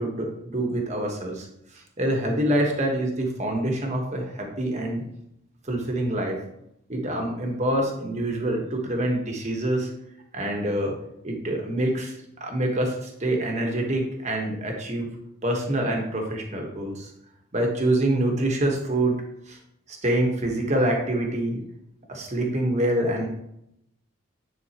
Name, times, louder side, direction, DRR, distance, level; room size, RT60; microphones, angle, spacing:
voice 1, 0.0-1.5 1.7-5.0 5.6-6.4 6.9-9.9 10.3-10.9 11.2-15.1 15.4-17.1 17.5-19.1 19.5-19.6 19.9-21.6 22.1-23.3, right 1 dB, 35° right, 1 dB, 1.2 m, -26 dB
9.7 x 3.8 x 2.9 m, 0.79 s
head